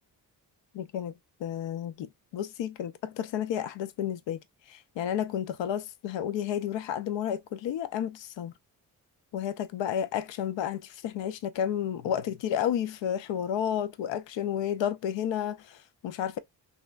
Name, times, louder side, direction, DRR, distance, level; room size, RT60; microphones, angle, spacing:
voice 1, 0.7-1.1 1.4-8.5 9.3-16.4, left 9 dB, 60° left, 0.6 m, -31 dB
3.0 x 2.7 x 2.3 m
hypercardioid pair, 40°, 50 cm